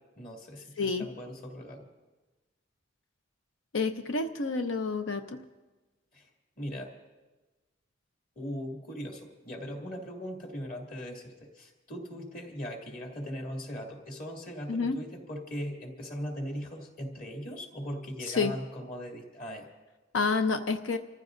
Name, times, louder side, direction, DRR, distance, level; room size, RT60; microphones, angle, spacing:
voice 1, 0.2-1.9 6.1-6.3 6.6-6.9 8.4-19.7, equal, 45° left, 0 dB, 2.4 m, -39 dB
voice 2, 0.8-1.1 3.7-5.4 14.7-15.0 18.3-18.5 20.1-21.0, left 4 dB, 85° left, 7 dB, 0.7 m, -29 dB
29.5 x 14.5 x 2.6 m, 1.2 s
head